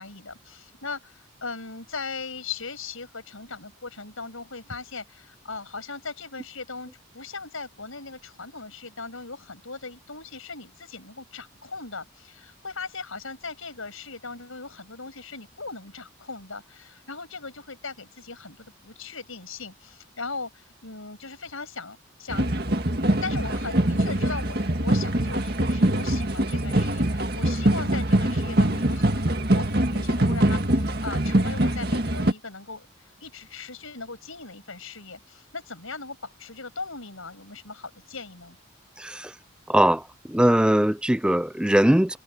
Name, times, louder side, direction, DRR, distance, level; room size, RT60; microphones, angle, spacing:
voice 1, 0.0-22.5 23.1-32.9 33.2-38.6, left 4 dB, 90° left, 7.5 m, -39 dB
sound 1, 22.3-32.3, right 1 dB, 50° right, 2.1 m, -23 dB
voice 2, 39.0-39.3 39.7-42.2, right 1 dB, 5° right, 0.4 m, -21 dB
head